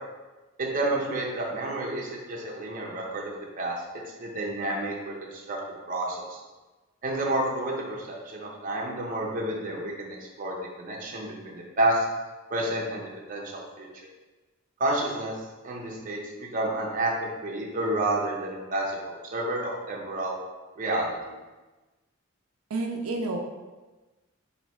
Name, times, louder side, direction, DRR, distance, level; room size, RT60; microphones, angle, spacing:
voice 1, 0.6-3.8 4.2-5.6 5.9-6.4 7.0-12.0 12.5-13.9 14.8-15.3 15.6-19.0 19.3-20.4 20.8-21.3, right 1 dB, 40° right, -2 dB, 0.7 m, -30 dB
voice 2, 22.7-23.4, right 2 dB, 90° right, 1 dB, 0.4 m, -29 dB
3.1 x 2.7 x 4.3 m, 1.2 s
head